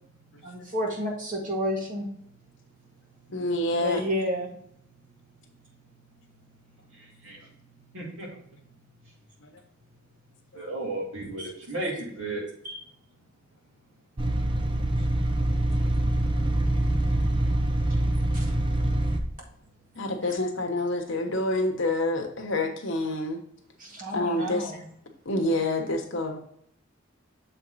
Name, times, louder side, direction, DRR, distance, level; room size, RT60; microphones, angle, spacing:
voice 1, 0.4-2.0 3.7-4.5 11.4-11.5 12.6-12.8 18.3-18.5 20.3-20.4 23.8-24.8, equal, 40° right, -1 dB, 1.9 m, -31 dB
voice 2, 3.3-4.0 9.4-9.5 20.0-23.4 24.1-24.7 25.2-26.4, left 1 dB, 65° left, 3 dB, 1.1 m, -27 dB
voice 3, 6.9-7.5 7.9-8.3 9.0-9.1 10.5-12.4, right 2 dB, 80° right, -2 dB, 2.3 m, -34 dB
sound 1, 14.2-19.2, right 1 dB, 25° right, 0.7 m, -25 dB
6.9 x 4.5 x 4.0 m, 0.67 s
head